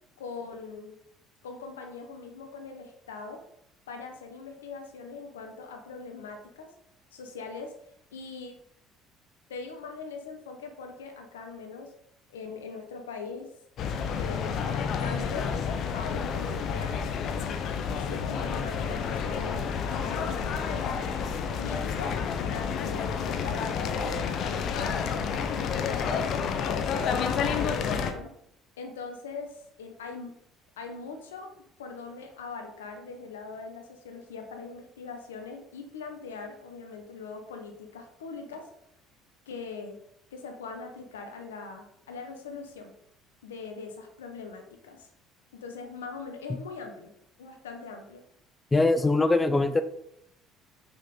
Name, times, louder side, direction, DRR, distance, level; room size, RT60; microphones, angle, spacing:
voice 1, 0.2-0.9 1.4-3.4 3.9-6.7 7.1-7.7 8.1-8.6 9.5-11.9 12.3-13.5 14.2-15.5 15.9-20.9 21.6-26.2 26.5-28.3 28.8-30.3 30.8-31.5 31.8-38.7 39.5-40.0 40.3-42.9 43.4-45.1 45.6-47.1 47.4-48.2, left 4 dB, 90° left, 5 dB, 1.3 m, -41 dB
sound 1, 13.8-28.1, left 6 dB, 60° left, 1.0 m, -30 dB
voice 2, 48.7-49.8, left 2 dB, 20° left, 11 dB, 0.7 m, -22 dB
8.3 x 5.9 x 3.9 m, 0.75 s
hypercardioid pair, 65°, 0 cm